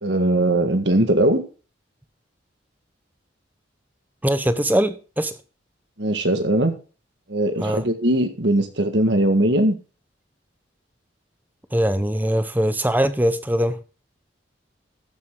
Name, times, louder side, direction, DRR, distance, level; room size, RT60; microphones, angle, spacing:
voice 1, 0.0-1.4 6.0-6.7 7.3-9.8, right 1 dB, 65° right, 7 dB, 1.7 m, -20 dB
voice 2, 4.2-5.3 7.6-7.8 11.7-13.8, right 1 dB, 10° right, 11 dB, 0.7 m, -21 dB
13.5 x 7.7 x 3.8 m, 0.35 s
head